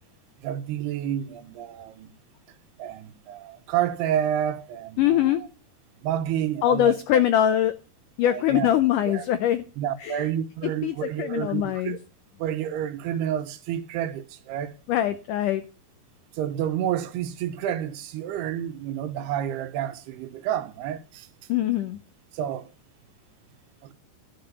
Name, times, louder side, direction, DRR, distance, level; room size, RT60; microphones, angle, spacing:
voice 1, 0.4-2.1 2.8-5.1 6.0-7.2 8.2-8.7 9.1-9.2 9.8-12.0 12.4-14.7 16.4-21.3 22.3-22.7 23.8-23.9, right 10 dB, 85° right, 2.9 m, -29 dB
voice 2, 5.0-5.4 6.6-7.7 8.2-9.6 10.0-10.3 10.6-12.0 14.9-15.6 21.5-22.0, left 11 dB, 85° left, 1.8 m, -23 dB
12.0 x 5.3 x 7.9 m
omnidirectional pair, 4.5 m